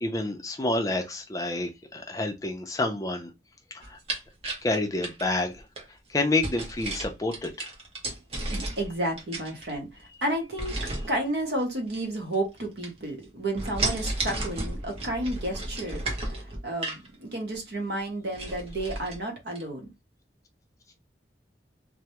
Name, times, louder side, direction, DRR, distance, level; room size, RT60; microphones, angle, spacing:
voice 1, 0.0-3.3 3.7-4.0 4.6-5.6 6.1-7.7, left 2 dB, 20° left, 0.4 m, -28 dB
sound 1, 3.8-5.8 6.4-8.9 9.2-10.0 10.6-11.1 11.9-12.6 12.8-13.2 13.5-17.1 17.5-17.6 18.0-18.1 18.3-19.2 19.6-19.7, right 2 dB, 35° right, 0.6 m, -33 dB
voice 2, 8.5-10.8 11.1-16.4 16.6-19.9, right 1 dB, 65° right, 0.8 m, -31 dB
2.2 x 2.0 x 2.8 m
head